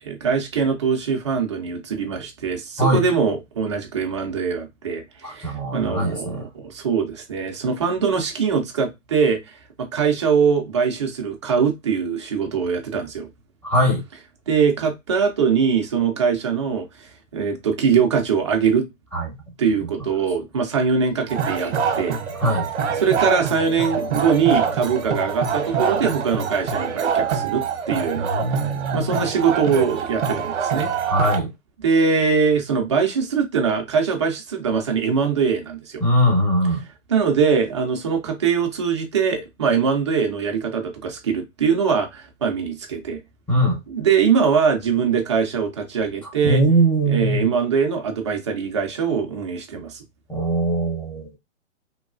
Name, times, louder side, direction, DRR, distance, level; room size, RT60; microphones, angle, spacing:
voice 1, 0.0-13.3 14.5-18.9 19.6-22.2 23.0-28.3 28.9-30.9 31.8-36.0 37.1-43.2 43.9-46.6 47.1-50.0, right 6 dB, 25° right, 0.4 m, -22 dB
voice 2, 5.2-6.4 13.6-14.0 19.1-19.3 22.4-22.7 28.1-29.1 31.1-31.5 36.0-36.8 43.5-43.8 46.4-47.5 50.3-51.3, right 1 dB, 5° left, 0.7 m, -21 dB
sound 1, 21.3-31.4, right 6 dB, 60° right, 0.7 m, -25 dB
3.0 x 2.2 x 2.3 m
hypercardioid pair, 140°, 39 cm